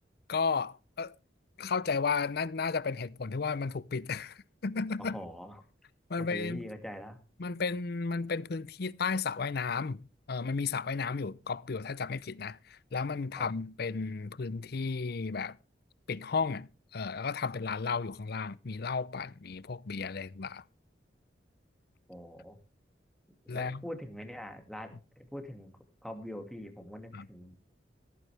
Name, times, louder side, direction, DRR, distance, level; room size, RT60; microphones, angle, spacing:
voice 1, 0.3-1.1 1.6-5.2 6.1-6.6 7.4-15.6 16.1-20.6 23.5-23.8 27.1-27.3, left 4 dB, 60° left, 0.6 m, -33 dB
voice 2, 5.0-5.6 6.2-7.2 13.4-13.5 22.1-22.6 23.5-25.0 25.3-25.7 26.0-27.5, equal, ahead, 2.2 m, -43 dB
15.5 x 14.5 x 3.3 m
head